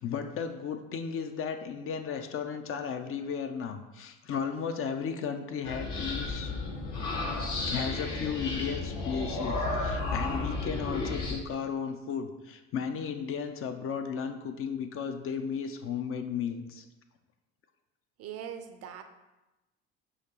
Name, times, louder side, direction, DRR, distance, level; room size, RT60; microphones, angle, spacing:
voice 1, 0.0-6.5 7.7-16.9, left 6 dB, 40° left, 7 dB, 0.5 m, -34 dB
sound 1, 5.6-11.3, left 3 dB, 60° left, 1.2 m, -33 dB
voice 2, 18.2-19.0, right 9 dB, 50° right, 8 dB, 0.5 m, -41 dB
5.7 x 2.9 x 2.9 m, 1.0 s
hypercardioid pair, 70°, 33 cm